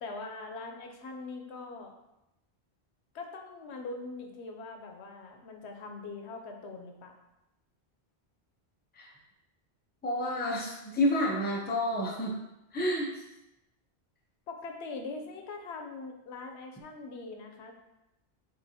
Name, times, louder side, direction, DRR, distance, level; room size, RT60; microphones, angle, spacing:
voice 1, 0.0-1.9 3.1-7.1 14.5-17.7, left 3 dB, 90° left, 3 dB, 1.0 m, -42 dB
voice 2, 10.0-12.3 12.7-13.1, left 1 dB, 10° left, -3 dB, 0.6 m, -29 dB
6.7 x 2.7 x 2.8 m, 0.92 s
omnidirectional pair, 1.1 m